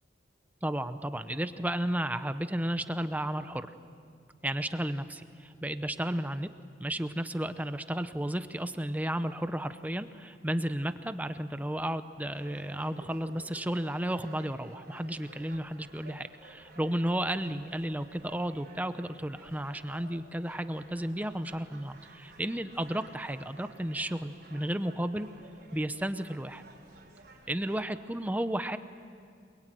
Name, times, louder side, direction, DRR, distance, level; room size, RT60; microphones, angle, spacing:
voice 1, 0.6-3.7 4.4-6.5 6.8-25.3 25.7-26.6 27.5-28.8, right 1 dB, 10° right, 10 dB, 0.8 m, -33 dB
sound 1, 12.3-27.9, right 2 dB, 60° right, 5.5 m, -55 dB
28.5 x 22.0 x 9.2 m, 2.4 s
head